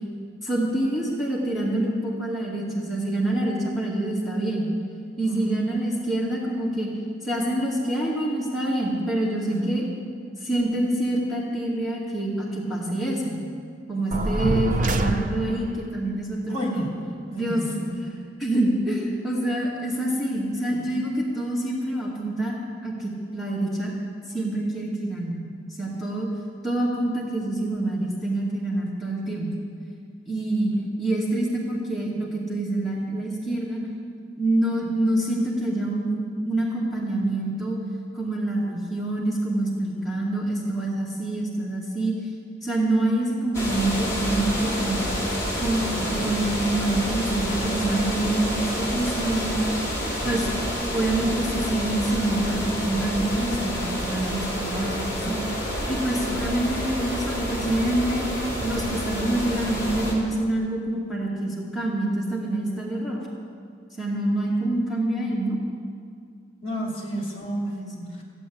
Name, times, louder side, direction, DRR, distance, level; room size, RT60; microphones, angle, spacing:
voice 1, 0.4-4.7 5.2-6.9 7.2-9.8 10.4-13.4 13.9-16.8 17.3-17.7 18.4-22.6 22.8-23.9 24.3-25.4 25.8-26.3 26.6-29.5 30.3-33.8 34.4-37.8 38.1-42.1 42.6-45.1 45.6-49.6 50.2-50.5 50.9-55.4 55.9-58.3 58.6-63.2 64.0-65.6 67.7-68.1, right 1 dB, ahead, -7 dB, 2.3 m, -26 dB
voice 2, 5.2-5.6 9.5-9.9 13.9-14.4 16.5-17.0 17.3-18.0 30.7-30.8 66.6-67.7, right 1 dB, 30° left, -2 dB, 2.7 m, -30 dB
sound 1, 14.1-15.8, right 2 dB, 45° right, 0.7 m, -25 dB
sound 2, 43.5-60.1, equal, 15° left, 3.4 m, -29 dB
15.5 x 8.6 x 8.7 m, 2.2 s
head